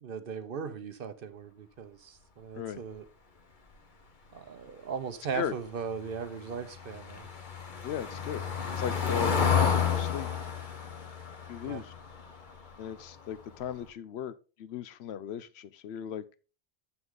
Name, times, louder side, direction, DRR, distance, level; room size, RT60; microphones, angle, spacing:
voice 1, 0.0-3.0 4.3-7.3 11.6-11.8, right 6 dB, 60° right, 0.9 m, -38 dB
Car passing by / Engine, 6.1-13.0 13.4-13.6 13.9-14.0, left 7 dB, 50° left, 1.1 m, -31 dB
voice 2, 7.8-8.4 8.8-10.3 11.5-11.9 12.8-16.2, left 9 dB, 80° left, 0.8 m, -37 dB
7.7 x 5.9 x 3.7 m
omnidirectional pair, 1.1 m